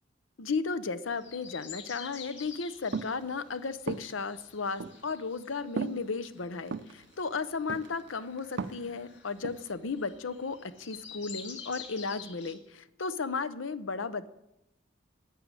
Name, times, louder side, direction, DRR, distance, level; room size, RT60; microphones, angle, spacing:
voice 1, 0.4-14.3, left 4 dB, 85° left, 13 dB, 0.8 m, -35 dB
sound 1, 1.1-12.5, left 7 dB, 65° left, 2.2 m, -49 dB
sound 2, 2.9-3.2 3.9-4.1 4.8-5.0 5.8-6.0 6.7-6.9 7.7-8.1 8.4-8.9 9.4-9.7, right 4 dB, 65° right, 0.6 m, -34 dB
11.0 x 7.6 x 9.9 m, 0.87 s
head